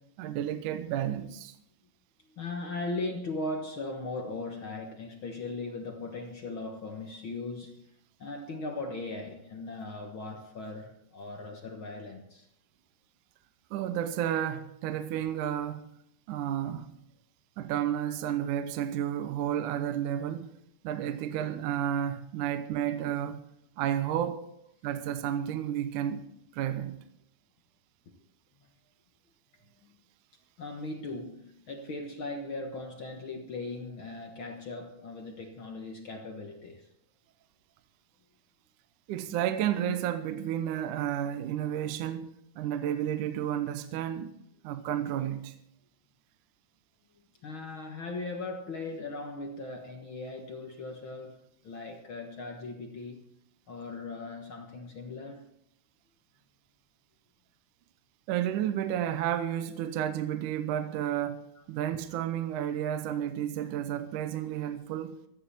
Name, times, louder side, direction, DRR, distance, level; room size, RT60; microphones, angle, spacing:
voice 1, 0.2-1.6 13.7-15.9 16.3-16.9 17.6-20.6 20.8-23.4 23.8-24.5 24.8-26.2 26.5-27.0 39.1-44.3 44.6-45.6 58.3-65.2, right 10 dB, 70° right, 2.1 m, -31 dB
voice 2, 2.3-7.8 8.2-12.5 28.6-28.7 29.8-30.0 30.6-36.9 47.4-53.3 53.7-55.5, left 2 dB, 55° left, 1.4 m, -38 dB
17.0 x 14.0 x 4.2 m
omnidirectional pair, 4.1 m